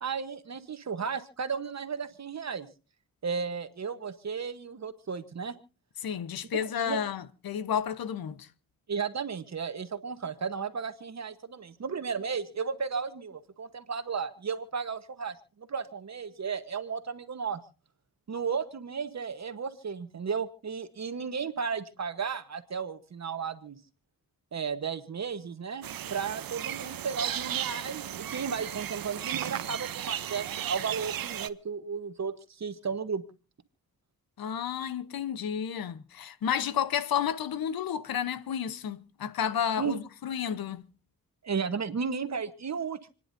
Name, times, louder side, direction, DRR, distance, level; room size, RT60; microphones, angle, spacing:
voice 1, 0.0-2.7 3.2-5.5 6.8-7.0 8.9-15.3 15.7-17.6 18.3-23.8 24.5-33.2 39.8-39.9 41.4-43.1, right 6 dB, 50° right, 1.2 m, -34 dB
voice 2, 6.0-8.5 34.4-40.8, left 8 dB, 85° left, 1.0 m, -31 dB
sound 1, 25.8-31.5, right 10 dB, 75° right, 0.8 m, -35 dB
29.5 x 10.0 x 2.7 m
wide cardioid pair, 100°, 35 cm